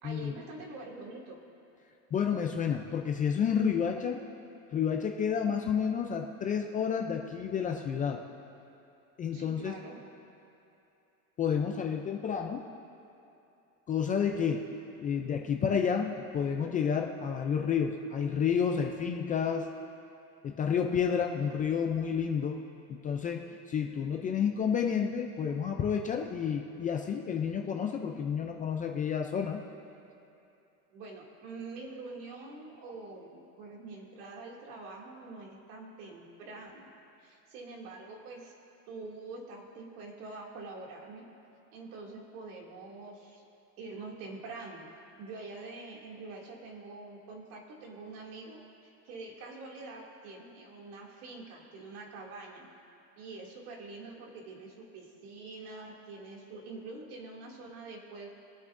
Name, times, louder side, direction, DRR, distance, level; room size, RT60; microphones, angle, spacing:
voice 1, 0.0-1.4 9.3-10.0 15.2-15.4 24.1-24.3 30.9-36.9 37.2-38.5 38.9-41.2 41.7-43.4 43.8-44.9 45.2-48.6 49.0-52.7 53.2-58.3, right 3 dB, 70° right, -2 dB, 2.6 m, -45 dB
voice 2, 2.1-4.2 4.7-8.2 9.2-9.7 11.4-12.6 13.9-14.7 15.0-19.7 20.4-22.6 22.9-29.6, left 7 dB, 20° left, 2 dB, 0.4 m, -30 dB
24.5 x 8.3 x 2.6 m, 2.8 s
supercardioid pair, 140°, 46 cm